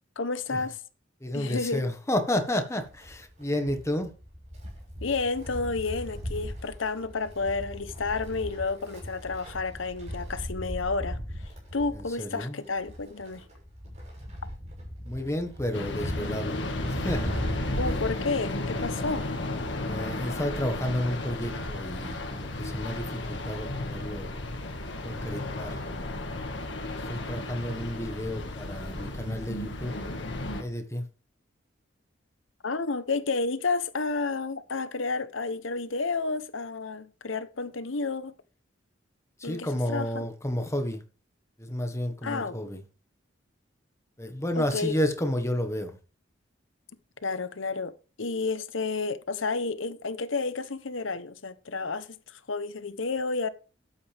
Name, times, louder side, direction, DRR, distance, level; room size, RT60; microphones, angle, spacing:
voice 1, 0.2-0.8 1.3-1.8 5.0-11.2 11.7-13.4 17.8-19.3 32.6-38.3 39.4-40.3 42.2-42.6 44.6-44.9 47.2-47.9 48.2-53.5, left 3 dB, 80° left, 1.0 m, -31 dB
voice 2, 1.2-4.1 11.9-12.6 15.0-17.4 19.8-24.3 25.0-25.8 27.1-30.0 30.6-31.0 39.4-41.0 41.6-42.8 44.2-46.0, left 1 dB, 15° left, 1.5 m, -31 dB
Wind, 2.9-19.4 19.7-19.8 20.8-20.9, equal, 35° right, 6.0 m, -38 dB
sound 1, 15.7-30.6, left 2 dB, 60° left, 1.9 m, -34 dB
12.5 x 8.7 x 3.5 m
head